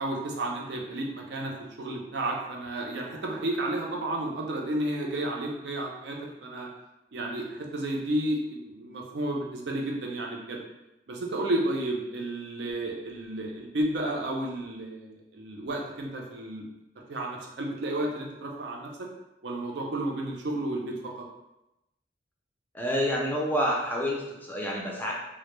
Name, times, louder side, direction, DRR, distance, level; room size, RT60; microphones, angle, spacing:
voice 1, 0.0-6.7 7.1-10.6 11.1-16.7 17.0-19.1 19.4-21.2, right 1 dB, 80° right, 0 dB, 0.5 m, -32 dB
voice 2, 22.7-25.1, equal, 10° left, -2 dB, 0.3 m, -28 dB
2.1 x 2.0 x 3.0 m, 0.91 s
head